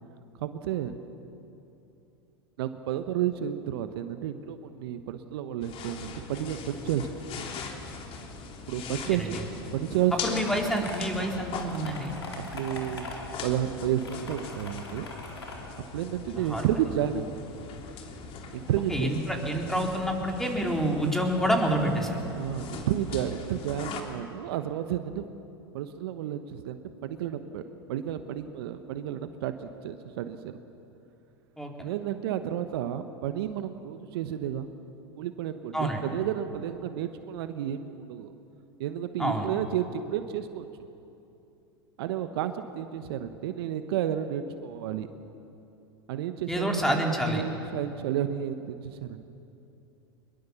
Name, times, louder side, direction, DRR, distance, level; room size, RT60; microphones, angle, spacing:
voice 1, 0.4-1.0 2.6-7.4 8.7-9.4 9.7-10.1 12.5-13.1 13.4-15.1 15.9-17.3 18.5-19.1 22.3-25.2 25.7-27.6 27.9-30.6 31.8-34.7 35.2-38.3 38.8-40.7 42.0-45.1 46.1-47.0 47.3-49.2, right 11 dB, 65° right, 9 dB, 1.2 m, -31 dB
sound 1, 5.6-24.0, left 5 dB, 45° left, 3.0 m, -41 dB
voice 2, 8.8-9.3 10.1-12.2 16.4-16.7 18.9-22.2 31.6-31.9 35.7-36.0 39.2-39.5 46.5-47.4, equal, 5° left, 1 dB, 3.9 m, -28 dB
sound 2, 10.5-11.0 11.6-13.2 14.0-15.6, left 3 dB, 90° left, 4.0 m, -41 dB
23.5 x 22.0 x 7.1 m, 2.8 s
hypercardioid pair, 85°, 14 cm